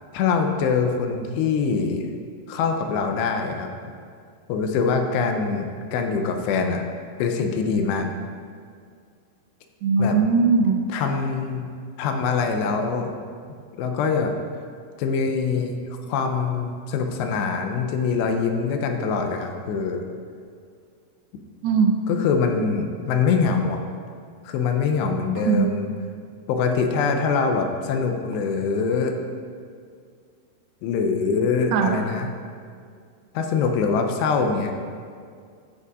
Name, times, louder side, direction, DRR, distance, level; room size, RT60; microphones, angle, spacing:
voice 1, 0.1-2.1 2.5-3.7 4.5-6.8 7.2-8.1 10.0-10.2 10.9-11.7 12.0-13.1 13.8-14.3 15.0-20.0 22.1-23.8 24.5-25.9 26.5-29.2 30.8-32.3 33.3-34.7, left 5 dB, 85° left, 4 dB, 2.8 m, -24 dB
voice 2, 9.8-10.8 21.6-21.9 25.5-25.7 31.7-32.0, right 5 dB, 80° right, 3 dB, 2.5 m, -19 dB
16.0 x 6.8 x 2.5 m, 2.2 s
omnidirectional pair, 4.9 m